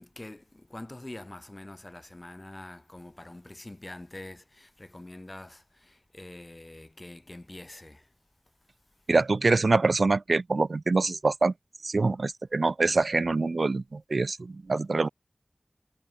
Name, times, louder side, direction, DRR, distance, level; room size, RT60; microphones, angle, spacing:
voice 1, 0.0-8.1, left 1 dB, 35° left, 3.1 m, -45 dB
voice 2, 9.1-11.5 11.8-15.1, right 3 dB, 75° right, 0.3 m, -25 dB
wide cardioid pair, 45°, 0 cm